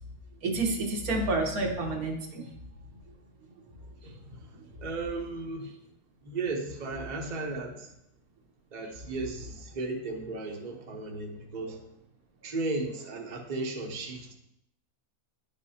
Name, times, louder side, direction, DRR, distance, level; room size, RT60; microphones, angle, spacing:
voice 1, 0.4-2.5, right 2 dB, 75° right, 2 dB, 1.5 m, -29 dB
voice 2, 4.0-4.5 4.8-5.7 6.2-7.9 8.7-11.8 12.4-14.3, right 3 dB, 35° right, 0 dB, 0.9 m, -35 dB
10.5 x 5.3 x 2.8 m, 0.81 s
omnidirectional pair, 1.6 m